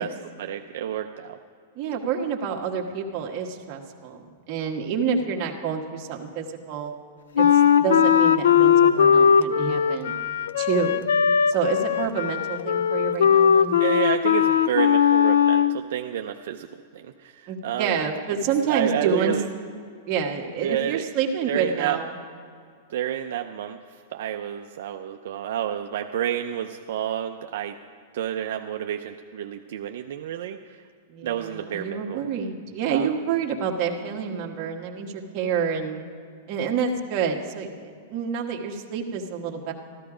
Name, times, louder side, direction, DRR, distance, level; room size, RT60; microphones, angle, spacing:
voice 1, 0.0-1.4 13.8-16.7 16.9-17.9 18.7-19.5 20.6-21.0 21.5-22.0 22.9-23.8 24.1-27.8 28.1-30.8 31.2-32.3 32.9-33.1, right 10 dB, 65° right, 5 dB, 0.5 m, -29 dB
voice 2, 1.7-6.9 7.4-7.5 7.7-10.1 10.6-11.1 11.5-13.8 17.5-19.3 20.1-22.2 31.1-36.0 36.5-39.7, right 6 dB, 35° right, 0 dB, 1.4 m, -28 dB
Wind instrument woodwind instrument, 7.4-15.8, left 8 dB, 85° left, 0.5 m, -19 dB
14.0 x 13.0 x 5.0 m, 2.2 s
supercardioid pair, 150°, 0 cm